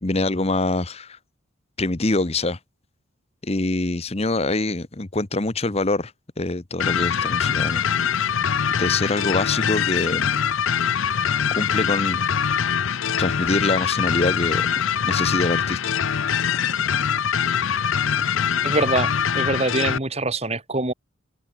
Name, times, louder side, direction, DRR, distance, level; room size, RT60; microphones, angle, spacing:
voice 1, 0.0-1.2 1.8-2.6 3.4-6.1 6.4-7.8 8.7-10.3 11.5-12.3 13.2-14.7 15.0-15.8, left 2 dB, 30° left, 1.0 m, -24 dB
sound 1, 6.8-20.0, left 7 dB, 70° left, 0.6 m, -23 dB
voice 2, 18.6-20.9, right 2 dB, 30° right, 2.2 m, -24 dB
open air
head